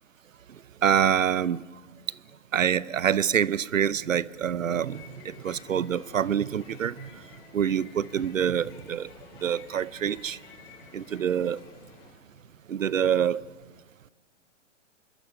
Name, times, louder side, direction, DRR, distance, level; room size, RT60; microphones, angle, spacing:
voice 1, 0.8-1.6 2.5-7.1 7.5-9.1 9.4-10.4 10.9-11.6 12.7-13.4, right 8 dB, 85° right, 0.7 m, -26 dB
sound 1, 4.6-12.3, left 5 dB, 50° left, 5.5 m, -51 dB
26.5 x 22.5 x 5.8 m
hypercardioid pair, 115°, 38 cm